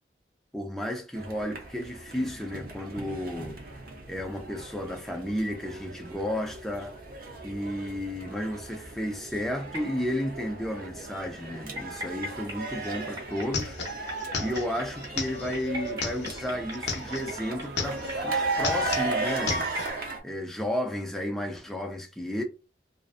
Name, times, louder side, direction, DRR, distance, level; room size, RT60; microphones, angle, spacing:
voice 1, 0.5-3.6 4.1-7.0 7.4-19.7 20.2-22.4, left 1 dB, ahead, 0.3 m, -33 dB
sound 1, 1.1-20.2, right 3 dB, 50° right, 0.6 m, -36 dB
sound 2, 9.6-20.0, left 1 dB, 20° right, 0.8 m, -43 dB
sound 3, 12.8-12.9 13.1-17.3 17.6-18.2 18.5-19.9, left 4 dB, 75° left, 0.5 m, -34 dB
2.5 x 2.3 x 2.3 m
head